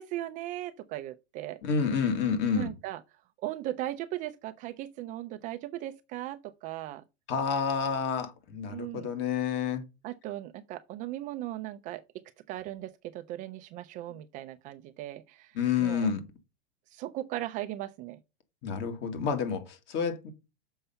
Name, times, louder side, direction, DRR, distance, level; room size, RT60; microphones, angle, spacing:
voice 1, 0.0-1.6 2.6-3.0 3.4-7.0 8.7-9.1 10.0-12.0 12.5-15.5 15.8-16.1 16.9-18.2, right 14 dB, 25° right, 0.4 m, -37 dB
voice 2, 1.6-2.7 7.3-9.8 15.5-16.2 18.6-20.3, left 6 dB, 35° left, 1.9 m, -29 dB
6.8 x 5.5 x 5.6 m
hypercardioid pair, 135°, 31 cm